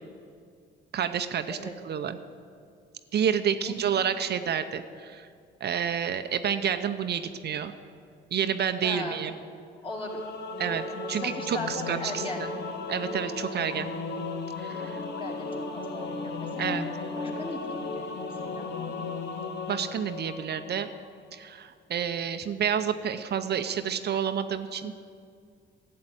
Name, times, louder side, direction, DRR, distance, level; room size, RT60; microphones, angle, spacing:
voice 1, 0.9-1.6 1.8-2.2 3.1-5.3 5.6-7.7 8.3-9.3 10.6-12.5 12.9-13.9 14.6-15.0 16.6-16.9 19.7-20.9 21.3-24.9, right 8 dB, 55° right, 8 dB, 0.7 m, -29 dB
voice 2, 8.8-9.2 9.8-10.2 11.2-12.4 15.2-16.8 17.1-18.9, left 1 dB, 25° left, 0 dB, 2.6 m, -38 dB
Singing / Musical instrument, 9.9-21.1, left 3 dB, 60° left, 1.3 m, -35 dB
11.5 x 7.6 x 9.9 m, 2.3 s
cardioid pair, 90°, 20 cm